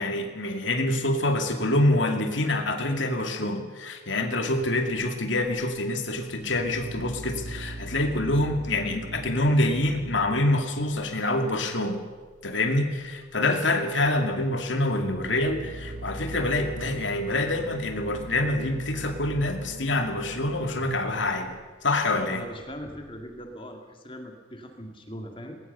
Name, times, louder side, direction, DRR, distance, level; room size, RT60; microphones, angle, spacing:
voice 1, 0.0-12.0 12.4-22.4, left 2 dB, 80° left, 5 dB, 2.5 m, -26 dB
sound 1, 4.5-5.9 6.2-11.2 11.4-11.9 12.1-12.7 13.0-13.7 14.0-23.5, right 2 dB, 70° right, 2.3 m, -41 dB
voice 2, 22.0-25.6, equal, 25° left, 4 dB, 2.2 m, -40 dB
20.0 x 19.5 x 6.9 m, 1.4 s
head